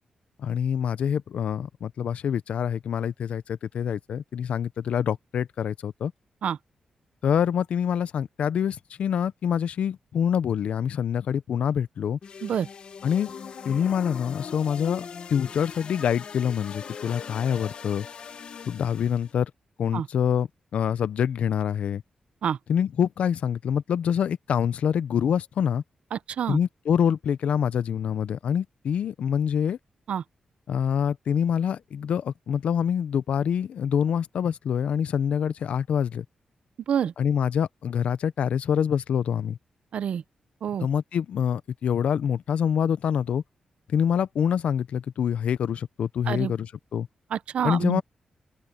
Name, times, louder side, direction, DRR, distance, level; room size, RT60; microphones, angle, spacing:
voice 1, 0.4-6.1 7.2-12.2 13.0-13.3 13.6-18.1 18.7-19.5 19.8-20.5 20.7-22.0 22.7-25.8 26.5-29.8 30.7-36.2 37.2-39.6 40.8-43.4 43.9-47.1 47.6-48.0, left 8 dB, 70° left, 0.7 m, -26 dB
sound 1, 12.2-19.3, left 6 dB, 50° left, 1.2 m, -40 dB
voice 2, 26.1-26.6 30.1-30.2 36.9-37.1 39.9-40.2 40.6-40.9 46.3-46.5 47.3-48.0, right 8 dB, 70° right, 0.6 m, -27 dB
open air
wide cardioid pair, 165°, 2 cm